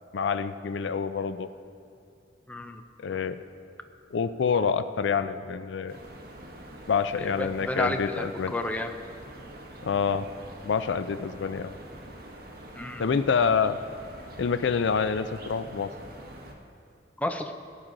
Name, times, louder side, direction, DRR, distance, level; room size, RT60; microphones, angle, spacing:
voice 1, 0.1-1.5 3.0-3.4 4.1-6.0 6.9-8.5 9.8-10.3 10.6-11.7 13.0-13.8 14.4-15.9, left 6 dB, 90° left, 12 dB, 0.4 m, -27 dB
voice 2, 2.5-2.8 7.1-8.9 12.7-13.1 17.2-17.5, left 1 dB, 10° left, 6 dB, 0.6 m, -31 dB
sound 1, 5.9-16.5, right 1 dB, 55° right, 1.3 m, -45 dB
18.0 x 8.9 x 3.9 m, 2.6 s
head